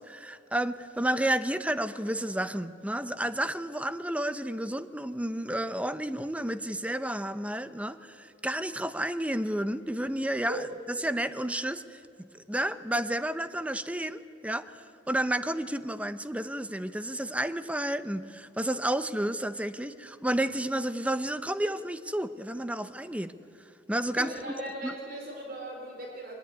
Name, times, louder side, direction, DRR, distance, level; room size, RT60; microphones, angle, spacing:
voice 1, 0.0-14.7 15.1-23.3 23.9-24.5 24.8-24.9, right 1 dB, 5° right, 12 dB, 0.8 m, -31 dB
voice 2, 24.1-26.3, right 1 dB, 55° right, 0 dB, 4.3 m, -38 dB
24.0 x 19.5 x 9.6 m, 2.5 s
head